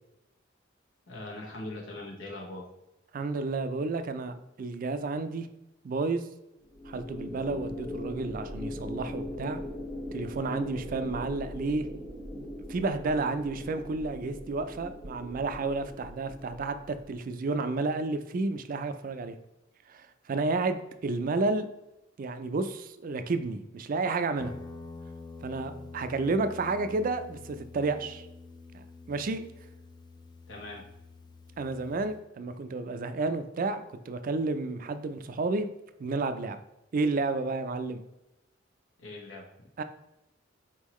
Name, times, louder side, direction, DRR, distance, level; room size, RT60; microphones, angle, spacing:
voice 1, 1.1-2.6 30.5-30.8 39.0-39.7, left 2 dB, 80° left, -1 dB, 1.3 m, -41 dB
voice 2, 3.1-5.5 5.8-6.2 6.9-9.6 10.1-11.9 12.3-19.4 19.9-21.7 22.2-24.5 25.4-28.3 28.7-29.4 31.6-35.7 36.0-36.6 36.9-38.0 39.8-39.9, right 3 dB, 45° right, 10 dB, 0.4 m, -31 dB
sound 1, 6.7-17.2, left 1 dB, 45° left, 1.4 m, -40 dB
Guitar, 24.4-32.2, left 3 dB, 25° left, 0.4 m, -47 dB
4.4 x 3.7 x 3.0 m, 0.91 s
head